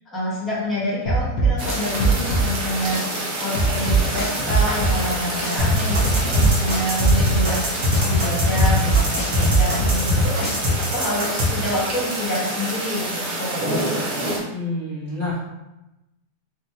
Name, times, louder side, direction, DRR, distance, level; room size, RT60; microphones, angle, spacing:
voice 1, 0.1-10.6 10.9-13.8, left 1 dB, ahead, -10 dB, 1.1 m, -27 dB
sound 1, 1.1-2.5 2.9-3.1 3.6-5.0 5.4-5.6 5.9-7.5 7.9-8.1 8.6-10.0 10.4-10.6, right 3 dB, 75° left, 1.2 m, -20 dB
sound 2, 1.6-14.4, right 1 dB, 60° right, 0.5 m, -28 dB
sound 3, 5.6-11.5, left 1 dB, 85° right, 1.6 m, -21 dB
voice 2, 14.5-15.4, left 2 dB, 35° left, -11 dB, 0.9 m, -28 dB
3.6 x 2.5 x 2.8 m, 0.97 s
omnidirectional pair, 1.7 m